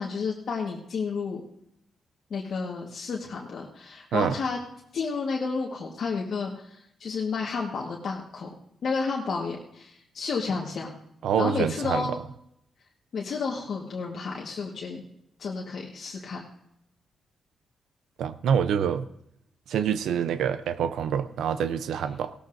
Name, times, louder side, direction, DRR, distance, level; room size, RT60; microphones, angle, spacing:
voice 1, 0.0-1.4 2.3-4.6 4.9-8.5 8.8-11.0 11.4-12.1 13.1-15.0 15.4-16.4, left 4 dB, 60° left, -2 dB, 1.4 m, -31 dB
voice 2, 11.2-12.0 18.2-19.1 19.7-22.3, right 8 dB, 85° right, 12 dB, 0.5 m, -26 dB
17.0 x 13.0 x 2.6 m, 0.78 s
cardioid pair, 110°, 0 cm